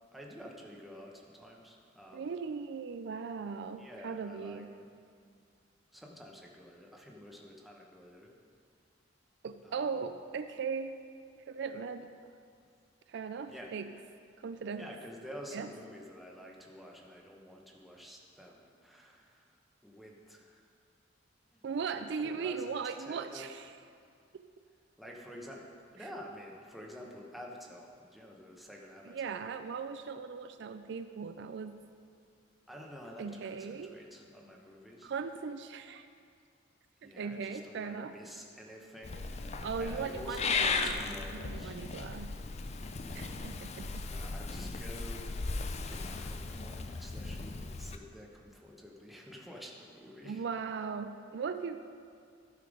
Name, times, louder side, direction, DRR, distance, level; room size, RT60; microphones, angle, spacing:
voice 1, 0.1-2.3 3.8-4.7 5.9-8.3 9.6-10.0 13.5-13.7 14.8-19.4 19.8-20.6 21.5-21.6 21.9-23.5 25.0-25.7 25.9-29.4 32.7-35.1 37.0-41.8 42.9-43.4 44.0-50.4, equal, ahead, -2 dB, 1.1 m, -49 dB
voice 2, 2.1-4.7 9.4-11.0 11.5-12.1 13.1-13.9 14.4-14.9 15.5-15.7 21.6-23.7 24.3-24.4 29.0-31.8 33.2-33.9 35.0-36.1 37.0-38.1 39.6-42.3 43.1-44.1 50.2-51.8, right 5 dB, 65° right, 9 dB, 0.4 m, -38 dB
Purr / Meow, 39.0-48.0, left 4 dB, 35° left, 0.5 m, -36 dB
13.5 x 5.8 x 5.0 m, 2.3 s
head